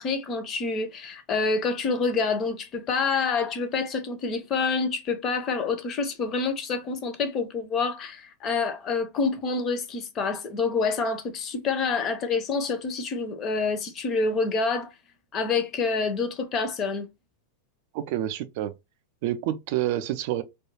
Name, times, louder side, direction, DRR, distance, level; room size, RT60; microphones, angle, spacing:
voice 1, 0.0-14.9 15.3-17.1, left 4 dB, 30° left, 0.6 m, -27 dB
voice 2, 17.9-18.7 19.2-20.4, right 13 dB, 50° right, 0.3 m, -28 dB
2.3 x 2.2 x 3.1 m
figure-of-eight pair, 90°, 0 cm